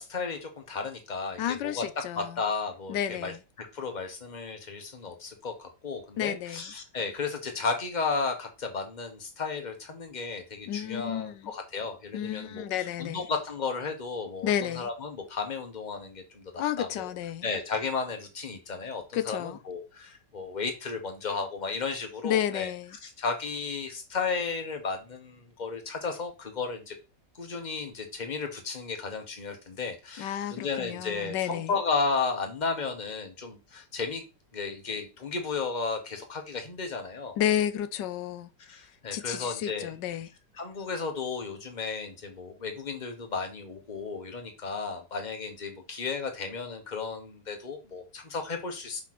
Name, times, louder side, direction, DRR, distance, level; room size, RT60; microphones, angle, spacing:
voice 1, 0.0-17.1 17.4-22.7 23.0-26.9 27.3-34.2 34.5-37.4 38.7-39.9 40.6-49.0, left 4 dB, 25° left, 1.4 m, -34 dB
voice 2, 1.4-2.4 2.9-3.4 6.2-6.6 10.7-11.5 12.1-13.3 14.4-14.9 16.6-17.4 19.1-19.6 22.2-23.0 30.2-31.7 37.4-38.5 39.1-40.3, left 10 dB, 90° left, 1.3 m, -31 dB
5.7 x 3.8 x 6.0 m
omnidirectional pair, 1.9 m